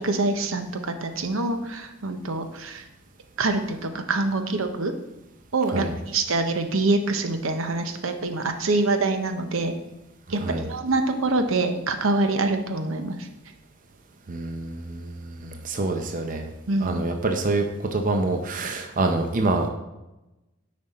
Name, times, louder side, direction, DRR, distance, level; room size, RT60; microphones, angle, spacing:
voice 1, 0.0-2.8 3.4-4.9 5.5-9.7 10.3-13.3 16.7-17.0, right 2 dB, 75° right, 7 dB, 0.8 m, -25 dB
voice 2, 14.3-16.5 16.8-19.7, right 2 dB, 40° right, 5 dB, 0.6 m, -26 dB
9.4 x 5.2 x 4.2 m, 0.98 s
head